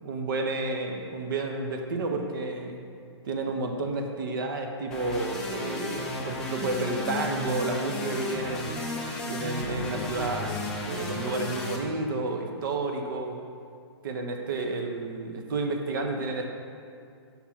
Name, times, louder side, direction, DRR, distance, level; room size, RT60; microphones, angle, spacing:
voice 1, 0.0-2.8 3.2-8.7 9.3-10.6 10.9-13.4 14.0-16.4, right 3 dB, 50° right, 4 dB, 0.7 m, -31 dB
sound 1, 4.9-11.8, left 2 dB, 5° left, 0.4 m, -34 dB
5.6 x 3.6 x 5.8 m, 2.3 s
hypercardioid pair, 165°, 14 cm